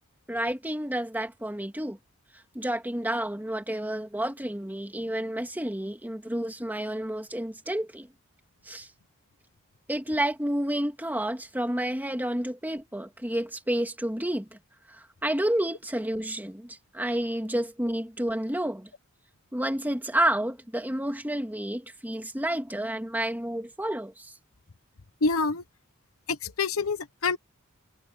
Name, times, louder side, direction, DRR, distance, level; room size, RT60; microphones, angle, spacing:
voice 1, 0.3-2.0 2.5-8.1 8.6-8.9 9.9-14.6 14.9-18.9 19.5-24.3, right 1 dB, 10° right, 2.6 m, -30 dB
voice 2, 25.2-25.6 26.3-27.4, left 4 dB, 75° left, 1.0 m, -26 dB
head